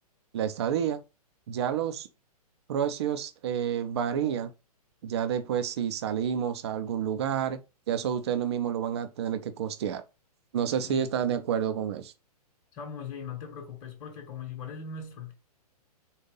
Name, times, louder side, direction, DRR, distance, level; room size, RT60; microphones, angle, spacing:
voice 1, 0.3-1.0 1.5-2.1 2.7-4.5 5.0-7.6 7.9-10.0 10.5-12.1, right 9 dB, 45° right, 0.5 m, -29 dB
voice 2, 12.7-15.3, left 6 dB, 30° left, 1.1 m, -39 dB
4.1 x 2.6 x 3.7 m
figure-of-eight pair, 115°, 20 cm